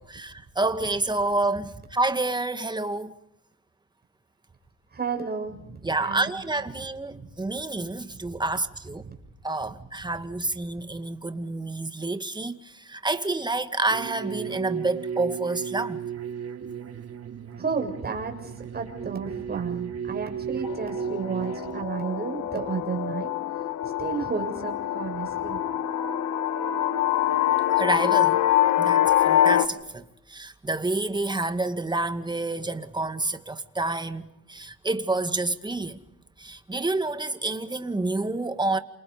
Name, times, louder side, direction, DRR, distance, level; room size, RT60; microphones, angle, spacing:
voice 1, 0.0-3.1 5.8-9.0 9.4-16.0 27.8-28.4 28.8-36.0 36.4-38.8, right 2 dB, 15° right, 2.1 m, -28 dB
voice 2, 4.9-6.4 7.1-7.3 9.0-9.1 9.7-9.8 17.6-23.3 23.6-25.6, right 5 dB, 30° right, 7.2 m, -32 dB
sound 1, 13.9-21.8, right 7 dB, 55° right, 3.0 m, -34 dB
Processed Sitar Riser, 20.7-29.7, left 12 dB, 70° left, 1.8 m, -24 dB
28.5 x 28.5 x 5.2 m
cardioid pair, 90°, 30 cm